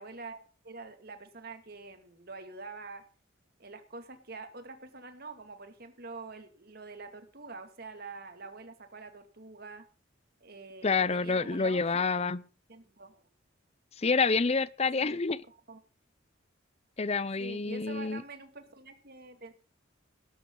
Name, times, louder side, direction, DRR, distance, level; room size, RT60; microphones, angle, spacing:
voice 1, 0.0-3.0 3.6-9.9 10.4-12.3 12.7-13.3 15.0-15.2 15.5-15.8 17.4-19.5, right 3 dB, 50° right, 8 dB, 2.3 m, -46 dB
voice 2, 10.8-12.4 14.0-15.4 17.0-18.2, left 4 dB, 35° left, 19 dB, 0.6 m, -28 dB
18.0 x 13.0 x 3.9 m, 0.36 s
head